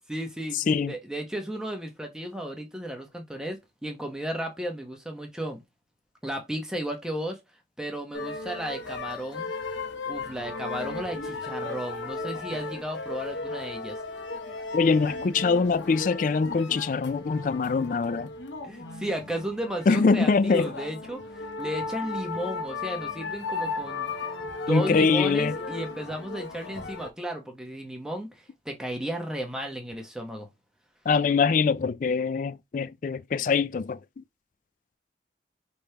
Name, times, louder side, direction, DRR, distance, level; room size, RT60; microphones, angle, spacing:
voice 1, 0.1-5.6 6.2-7.4 7.8-9.5 10.1-14.0 18.6-21.2 21.6-24.1 24.4-30.5, right 1 dB, 5° right, 0.9 m, -34 dB
sound 1, 8.1-27.1, left 3 dB, 85° left, 0.8 m, -36 dB
voice 2, 14.7-18.3 19.9-20.7 24.7-25.5 31.1-34.2, left 4 dB, 45° left, 0.3 m, -23 dB
5.2 x 3.3 x 2.8 m
head